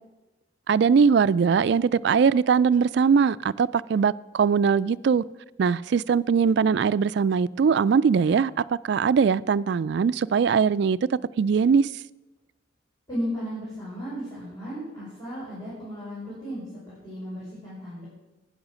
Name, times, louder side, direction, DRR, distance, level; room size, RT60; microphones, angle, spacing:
voice 1, 0.7-5.2 5.6-11.0 11.4-11.9, right 6 dB, 55° right, 0.3 m, -21 dB
voice 2, 13.1-16.6 17.0-18.1, equal, 15° left, 5.6 m, -34 dB
12.0 x 9.6 x 6.3 m
head